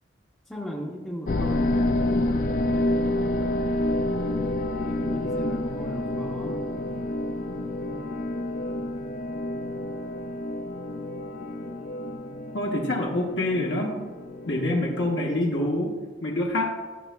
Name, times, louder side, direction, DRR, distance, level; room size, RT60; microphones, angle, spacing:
voice 1, 0.5-2.4 4.8-6.7 7.9-8.0 13.5-13.9 15.3-15.8, equal, 5° left, -5 dB, 0.7 m, -37 dB
sound 1, 1.3-15.3, left 1 dB, 45° left, 0.4 m, -29 dB
voice 2, 12.5-14.0 14.5-15.9 16.2-16.7, left 1 dB, 70° left, -2 dB, 1.1 m, -26 dB
11.5 x 5.9 x 2.2 m, 1.4 s
head